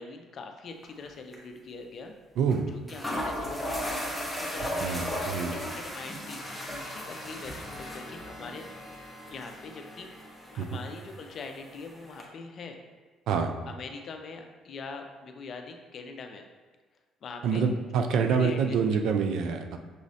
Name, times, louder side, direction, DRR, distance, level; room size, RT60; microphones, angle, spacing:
voice 1, 0.0-2.1 2.7-4.0 4.4-9.0 9.3-10.1 10.5-12.8 13.7-16.5 17.2-17.7 18.1-19.0, left 4 dB, 50° left, 5 dB, 0.5 m, -43 dB
sound 1, 0.8-1.1 1.3-1.4 2.5-2.6 2.9-12.2, equal, 5° left, 0.9 m, -37 dB
voice 2, 4.8-5.6 10.6-10.7 13.3-13.5 17.4-19.8, right 6 dB, 70° right, 6 dB, 0.4 m, -26 dB
sound 2, 6.4-11.9, left 1 dB, 25° left, 1.2 m, -48 dB
6.2 x 3.1 x 2.7 m, 1.4 s
cardioid pair, 120°, 0 cm